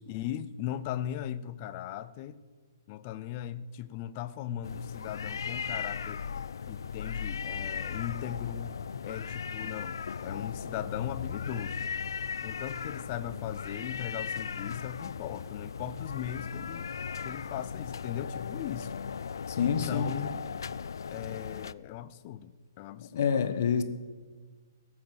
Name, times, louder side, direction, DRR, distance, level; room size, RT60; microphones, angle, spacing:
voice 1, 0.1-2.4 2.9-6.2 6.7-8.8 9.0-11.9 12.4-16.9 17.2-19.0 19.5-20.4 21.1-23.3, left 11 dB, 20° left, 0.4 m, -38 dB
sound 1, 4.6-21.7, left 6 dB, 85° left, 0.4 m, -37 dB
voice 2, 19.5-20.2 23.1-23.8, left 7 dB, 45° left, 1.1 m, -27 dB
17.5 x 7.6 x 7.8 m
hypercardioid pair, 175°, 2 cm